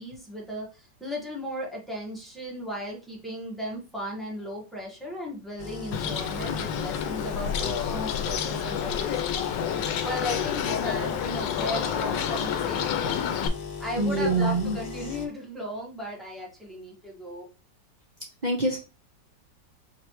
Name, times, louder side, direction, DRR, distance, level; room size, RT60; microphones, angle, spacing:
voice 1, 0.0-9.4 10.0-13.3 13.8-17.5, equal, ahead, -3 dB, 1.0 m, -36 dB
sound 1, 5.6-15.3, left 5 dB, 60° left, 1.3 m, -38 dB
Bird, 5.9-13.5, left 8 dB, 80° left, 1.2 m, -29 dB
voice 2, 14.0-15.1 18.4-18.8, right 2 dB, 55° right, -2 dB, 0.4 m, -26 dB
5.0 x 3.2 x 2.9 m, 0.32 s
omnidirectional pair, 2.0 m